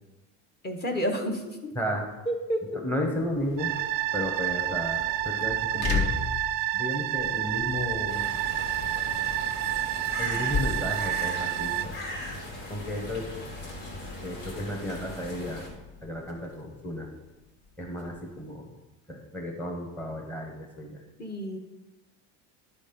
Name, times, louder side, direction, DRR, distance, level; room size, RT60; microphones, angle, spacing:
voice 1, 0.6-1.7 2.3-2.6 21.2-21.6, equal, 25° left, 3 dB, 1.0 m, -30 dB
voice 2, 1.7-2.1 2.7-3.7 4.1-6.1 6.7-8.2 10.2-12.3 12.7-13.3 14.2-15.6 16.0-17.1 17.8-18.7 19.1-21.0, left 1 dB, 5° left, 0 dB, 0.9 m, -33 dB
sound 1, 3.1-18.5, left 4 dB, 50° left, 1.3 m, -38 dB
sound 2, 3.6-11.9, right 13 dB, 60° right, 0.5 m, -29 dB
sound 3, 8.1-15.7, left 1 dB, 90° left, 2.7 m, -39 dB
11.0 x 4.2 x 5.2 m, 1.1 s
cardioid pair, 140°, 36 cm